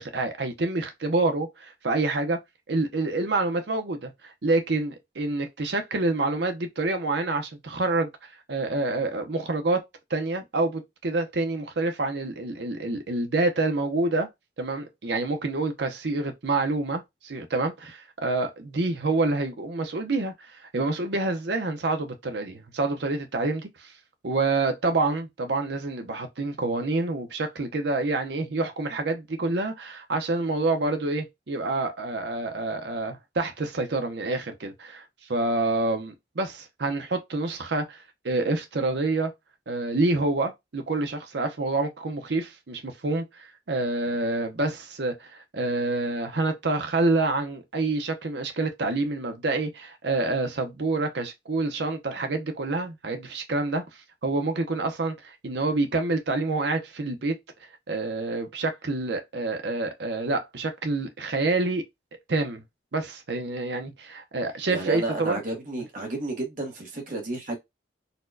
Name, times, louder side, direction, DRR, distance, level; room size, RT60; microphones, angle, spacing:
voice 1, 0.0-2.4 2.7-8.1 8.5-9.8 10.1-14.3 14.6-23.9 24.2-35.0 35.3-39.3 39.7-53.8 54.2-57.4 57.9-61.8 62.3-62.6 62.9-65.4, right 2 dB, 60° right, 0.7 m, -27 dB
voice 2, 64.7-67.6, right 2 dB, 45° right, 1.0 m, -31 dB
4.1 x 2.2 x 2.5 m
head